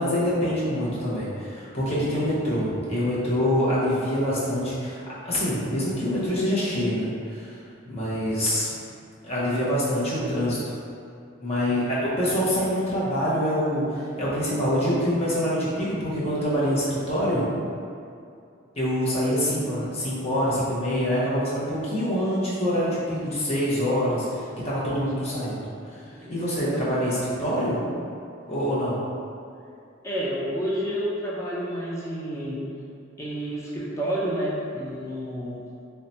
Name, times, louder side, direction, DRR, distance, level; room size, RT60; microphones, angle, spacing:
voice 1, 0.0-7.6 7.8-8.7 9.2-10.6 11.4-17.4 18.8-26.0 26.3-27.8 28.5-29.0, equal, 30° left, -9 dB, 0.8 m, -25 dB
voice 2, 26.7-27.2 30.0-32.6 33.2-35.6, equal, 15° left, -7 dB, 0.4 m, -30 dB
2.7 x 2.2 x 4.1 m, 2.5 s
head